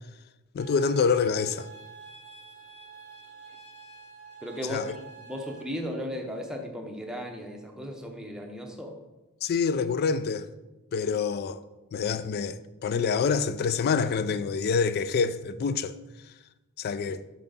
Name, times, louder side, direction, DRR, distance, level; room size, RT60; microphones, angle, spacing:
voice 1, 0.5-1.7 4.7-4.9 9.4-10.5 10.9-11.6 11.9-16.0 16.8-17.2, left 5 dB, 45° left, 0.3 m, -26 dB
sound 1, 0.6-5.6, right 4 dB, 90° left, 1.6 m, -48 dB
voice 2, 4.4-9.0, equal, 5° right, 0.7 m, -36 dB
7.4 x 4.5 x 3.9 m
head